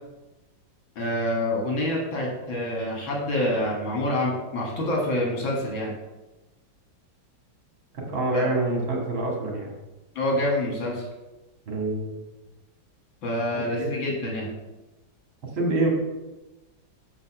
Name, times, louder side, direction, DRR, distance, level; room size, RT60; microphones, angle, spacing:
voice 1, 1.0-5.9 8.3-8.5 10.2-11.1 13.2-14.5, left 1 dB, 75° left, -2 dB, 2.7 m, -27 dB
voice 2, 7.9-9.7 11.7-12.2 13.5-13.9 15.5-15.9, right 2 dB, 75° right, -1 dB, 2.8 m, -26 dB
7.6 x 5.6 x 6.0 m, 1.1 s
omnidirectional pair, 2.2 m